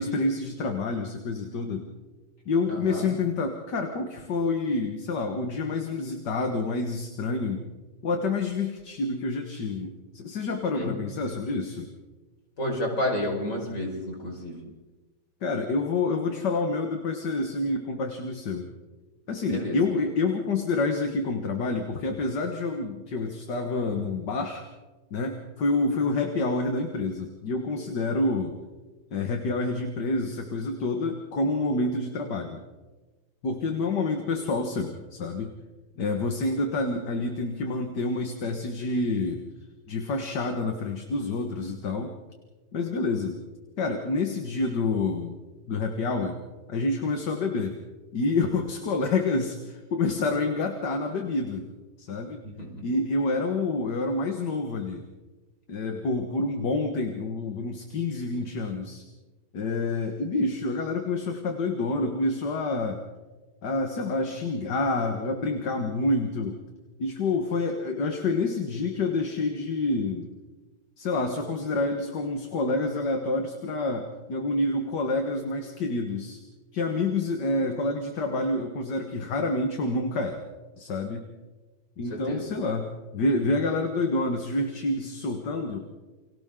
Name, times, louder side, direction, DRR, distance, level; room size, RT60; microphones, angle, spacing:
voice 1, 0.0-1.8 2.5-7.6 8.0-11.9 15.4-18.7 19.3-24.6 25.1-28.6 29.1-32.6 33.4-35.5 36.0-39.4 39.9-42.2 42.7-43.4 43.8-45.4 45.7-46.4 46.7-47.8 48.1-51.7 52.0-52.4 52.8-55.0 55.7-59.0 59.5-63.0 63.6-66.6 67.0-70.3 71.0-76.4 76.7-80.4 80.8-81.3 82.0-82.9 83.1-85.8, left 3 dB, 55° left, 4 dB, 2.1 m, -28 dB
voice 2, 2.7-3.1 10.7-10.9 12.6-14.6 19.5-19.8 52.4-52.7 82.1-82.4, left 1 dB, 35° left, 0 dB, 5.6 m, -30 dB
30.0 x 24.5 x 3.8 m, 1.2 s
omnidirectional pair, 2.3 m